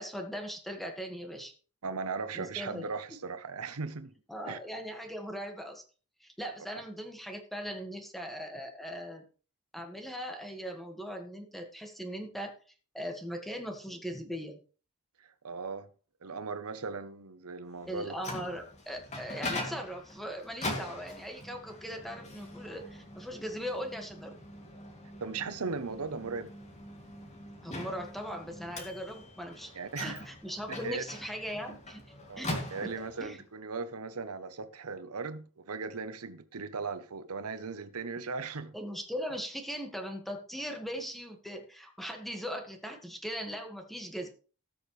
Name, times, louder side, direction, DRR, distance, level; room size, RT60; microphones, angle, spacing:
voice 1, 0.0-1.5 2.3-2.9 4.3-5.8 6.2-9.3 9.7-12.5 12.9-14.6 17.9-24.4 27.6-29.7 30.0-32.0 32.4-32.5 32.8-33.4 38.7-44.3, equal, ahead, 1.7 m, -39 dB
voice 2, 1.8-4.1 4.5-4.6 15.2-15.9 16.2-18.1 25.2-26.5 29.7-30.2 30.8-31.0 32.3-32.4 32.7-38.7, right 4 dB, 90° right, 0.9 m, -38 dB
Microwave oven, 17.9-33.3, left 1 dB, 30° left, 2.6 m, -42 dB
18.5 x 6.5 x 3.2 m
head